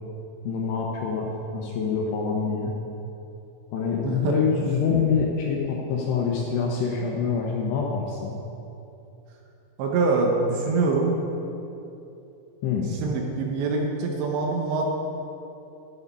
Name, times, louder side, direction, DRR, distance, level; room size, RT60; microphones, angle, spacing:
voice 1, 0.4-2.7 3.7-8.4 12.6-13.0, left 5 dB, 75° left, -1 dB, 2.7 m, -26 dB
voice 2, 4.0-4.4 9.8-11.1 12.9-14.9, right 3 dB, 75° right, 1 dB, 2.9 m, -24 dB
11.5 x 7.7 x 5.3 m, 2.9 s
omnidirectional pair, 5.7 m